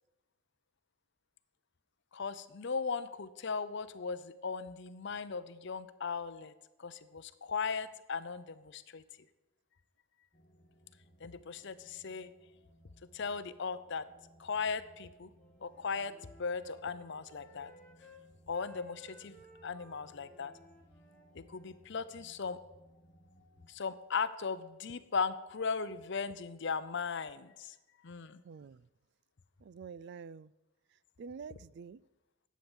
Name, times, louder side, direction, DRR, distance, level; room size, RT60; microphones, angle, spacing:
voice 1, 2.1-6.5 6.8-9.0 11.2-12.3 13.1-14.1 14.4-15.3 15.6-17.7 18.5-19.3 19.6-20.5 21.3-22.6 23.7-27.7 28.0-28.4, left 5 dB, 55° left, 14 dB, 0.6 m, -37 dB
sound 1, 10.3-23.7, equal, 20° left, 1.5 m, -64 dB
Wind instrument woodwind instrument, 15.4-18.3 18.5-21.8, left 2 dB, 5° left, 2.1 m, -59 dB
voice 2, 28.4-28.8 29.6-30.5 31.2-32.0, right 6 dB, 50° right, 21 dB, 0.3 m, -47 dB
11.5 x 8.4 x 7.3 m, 1.0 s
head